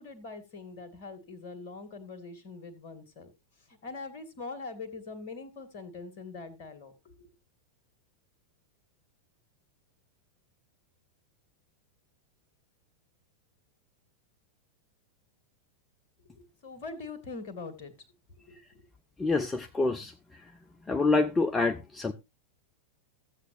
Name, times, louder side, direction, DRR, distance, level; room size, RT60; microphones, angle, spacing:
voice 1, 0.0-3.3 3.7-6.9 7.2-7.3 16.2-17.9 18.3-18.9, left 3 dB, 45° left, 2.3 m, -43 dB
voice 2, 19.2-20.1 20.4-20.5 20.9-22.1, left 3 dB, 15° left, 0.7 m, -27 dB
15.0 x 8.0 x 2.7 m
figure-of-eight pair, 90°, 0 cm